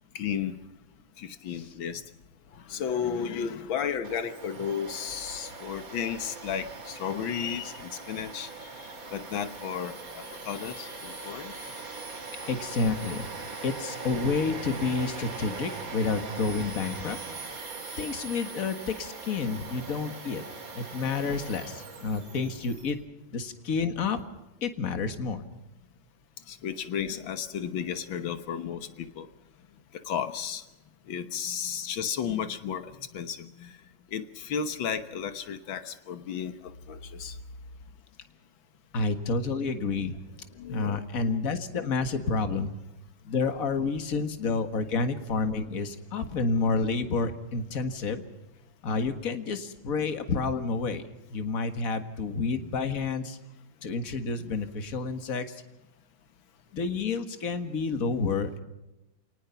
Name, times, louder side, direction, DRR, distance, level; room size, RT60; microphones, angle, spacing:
voice 1, 0.2-0.6 1.2-2.0 2.5-11.5 17.8-18.1 26.5-29.3 29.9-30.6 31.1-33.8 34.1-37.4 40.6-41.3, left 7 dB, 85° left, 10 dB, 2.0 m, -34 dB
Domestic sounds home sounds, 4.0-22.9, right 4 dB, 45° right, 2.8 m, -41 dB
voice 2, 12.5-13.3 13.6-17.2 18.0-20.5 20.7-23.0 23.3-24.2 24.6-25.4 38.9-40.2 40.7-42.7 43.3-48.2 48.8-53.4 53.8-55.6 56.7-58.6, left 4 dB, 45° left, 9 dB, 2.1 m, -29 dB
28.5 x 19.0 x 5.8 m, 0.97 s
omnidirectional pair, 2.1 m